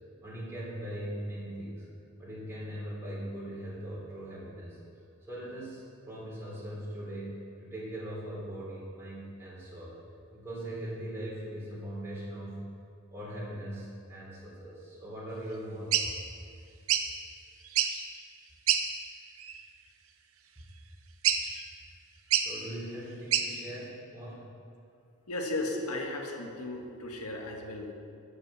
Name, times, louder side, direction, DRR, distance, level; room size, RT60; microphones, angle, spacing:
voice 1, 0.2-1.9 2.2-4.8 5.3-10.0 10.3-12.7 13.1-16.3 22.4-24.5, right 1 dB, 10° right, -7 dB, 3.3 m, -40 dB
sound 1, 15.9-16.1 16.9-17.1 17.6-18.0 18.7-18.8 19.4-19.6 21.2-21.6 22.3-22.5 23.3-23.5, right 9 dB, 70° right, 0.8 m, -26 dB
voice 2, 25.3-27.9, left 2 dB, 90° left, 1 dB, 1.7 m, -35 dB
13.0 x 7.6 x 6.2 m, 2.5 s
head